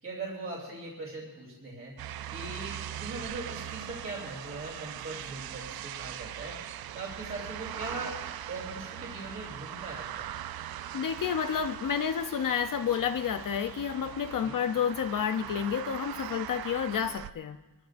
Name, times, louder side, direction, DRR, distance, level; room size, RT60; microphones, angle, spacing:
voice 1, 0.0-1.9 2.3-6.6 6.9-8.2 8.5-10.3 14.4-14.6, right 2 dB, 35° right, -3 dB, 3.3 m, -40 dB
sound 1, 2.0-17.3, right 11 dB, 65° right, 0.5 m, -41 dB
voice 2, 10.9-17.6, left 8 dB, 55° left, 9 dB, 0.7 m, -30 dB
22.5 x 14.5 x 2.6 m, 1.2 s
wide cardioid pair, 145°, 40 cm